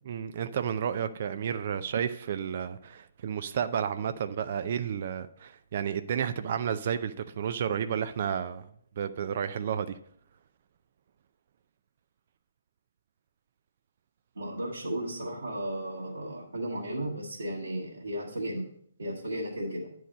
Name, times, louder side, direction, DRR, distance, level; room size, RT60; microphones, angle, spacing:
voice 1, 0.1-8.6 9.0-10.0, right 8 dB, 45° right, 11 dB, 0.4 m, -31 dB
voice 2, 14.4-18.7 19.0-19.9, right 1 dB, 70° right, -6 dB, 1.8 m, -34 dB
9.9 x 4.7 x 5.1 m, 0.64 s
figure-of-eight pair, 130°, 0 cm